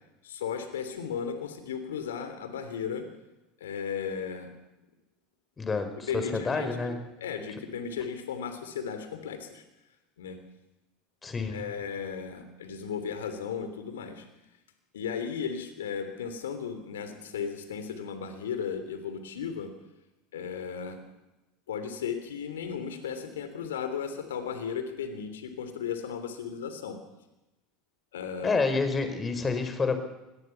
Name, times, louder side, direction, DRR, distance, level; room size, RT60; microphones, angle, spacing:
voice 1, 0.2-3.1 3.6-4.5 6.1-6.9 7.2-9.6 10.2-10.4 11.5-14.3 14.9-19.7 20.3-21.0 21.7-27.0 28.1-28.7, left 7 dB, 80° left, 9 dB, 3.2 m, -35 dB
voice 2, 5.6-7.0 11.2-11.6 28.4-30.0, left 4 dB, 25° left, 8 dB, 4.6 m, -28 dB
24.0 x 19.0 x 5.9 m, 1.0 s
hypercardioid pair, 80°, 0 cm